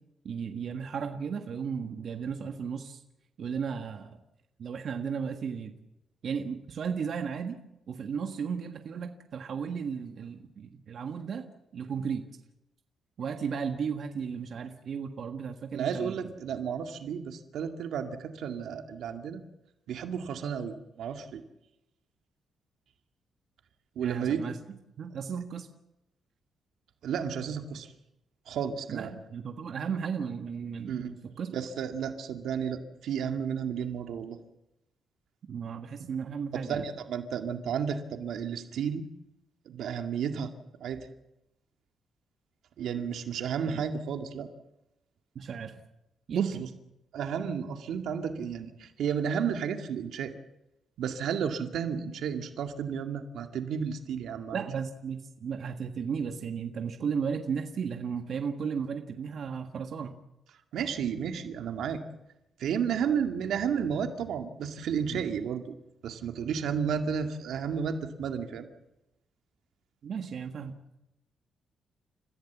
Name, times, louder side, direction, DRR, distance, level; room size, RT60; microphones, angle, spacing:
voice 1, 0.2-3.0 3.4-4.2 4.6-5.7 6.2-7.6 7.9-11.4 11.7-12.2 13.2-16.3 24.0-24.6 25.0-25.7 28.9-31.5 35.5-36.9 43.6-43.8 45.3-45.7 46.3-46.7 54.5-60.2 65.1-65.2 70.0-70.7, right 6 dB, 55° right, 5 dB, 1.5 m, -34 dB
voice 2, 15.7-19.4 19.9-21.4 24.0-24.4 27.0-27.9 28.5-29.1 30.9-31.1 31.5-34.4 36.7-39.1 39.7-40.5 40.8-41.1 42.8-44.5 46.3-46.5 47.1-50.3 51.0-54.6 60.7-62.0 62.6-65.7 66.0-68.7, right 7 dB, 80° right, 5 dB, 2.1 m, -32 dB
29.5 x 15.0 x 7.4 m, 0.90 s
cardioid pair, 150°, 0 cm